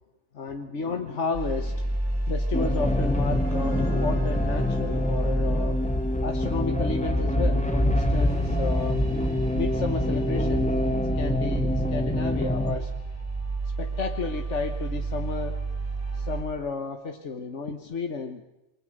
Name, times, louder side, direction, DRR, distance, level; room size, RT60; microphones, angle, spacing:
voice 1, 0.3-1.8 2.3-5.8 6.2-9.0 9.5-12.9 13.8-15.6 16.1-18.4, left 4 dB, 75° left, 4 dB, 1.7 m, -32 dB
sound 1, 1.3-16.4, right 1 dB, 15° right, 6.0 m, -28 dB
sound 2, 2.5-12.7, left 1 dB, 5° left, 2.3 m, -28 dB
sound 3, 3.2-8.4, left 5 dB, 35° left, 6.9 m, -48 dB
28.5 x 23.5 x 6.6 m, 0.95 s
omnidirectional pair, 1.2 m